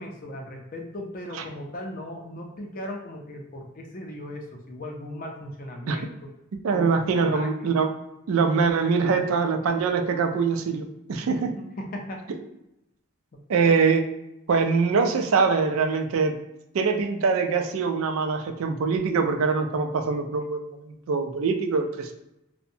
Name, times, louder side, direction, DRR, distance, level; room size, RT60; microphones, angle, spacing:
voice 1, 0.0-6.3 6.7-7.8 11.6-12.3 13.7-13.8, left 1 dB, 40° left, 1 dB, 0.4 m, -37 dB
voice 2, 6.6-7.9 8.3-11.5 13.5-14.0 14.5-16.4 16.7-22.1, right 5 dB, 70° right, 5 dB, 0.4 m, -23 dB
2.6 x 2.1 x 2.6 m, 0.88 s
head